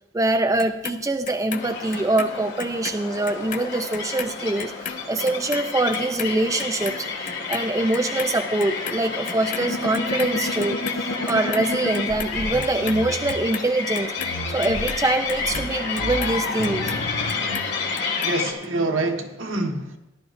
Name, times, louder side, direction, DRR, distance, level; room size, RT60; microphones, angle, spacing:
voice 1, 0.1-7.1 7.5-14.1 14.5-17.0, right 2 dB, 15° right, 6 dB, 0.4 m, -24 dB
Clock, 0.6-3.0 3.3-9.7 9.9-11.0 11.3-12.3 12.6-17.0 17.3-18.3 18.6-18.7, left 7 dB, 40° left, 0.6 m, -35 dB
sound 1, 1.5-18.5, left 4 dB, 60° left, 2.0 m, -30 dB
sound 2, 9.6-13.3 14.2-17.7, left 1 dB, 75° left, 1.0 m, -32 dB
voice 2, 18.2-20.0, right 2 dB, 65° right, 3 dB, 1.4 m, -26 dB
18.0 x 11.5 x 2.6 m, 0.91 s
head